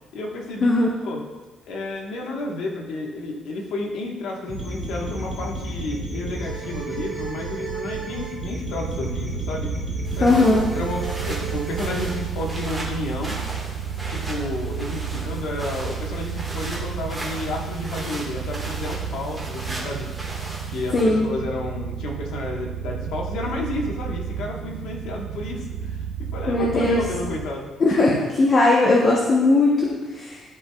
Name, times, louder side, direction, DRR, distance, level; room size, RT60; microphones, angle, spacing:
voice 1, 0.1-0.7 1.0-1.2 1.7-9.7 10.2-13.4 14.1-20.1 20.7-28.1, left 2 dB, 80° left, -1 dB, 1.3 m, -31 dB
sound 1, 4.5-12.2, right 2 dB, 10° left, 2.3 m, -32 dB
sound 2, 8.8-27.5, right 8 dB, 80° right, 0.6 m, -32 dB
sound 3, 10.0-21.0, right 1 dB, 10° right, 1.6 m, -36 dB
voice 2, 10.2-10.7 20.9-21.3 26.5-27.0 27.8-28.1 28.4-30.5, left 2 dB, 35° left, -2 dB, 0.9 m, -18 dB
12.0 x 4.8 x 2.3 m, 1.2 s
cardioid pair, 125°, 0 cm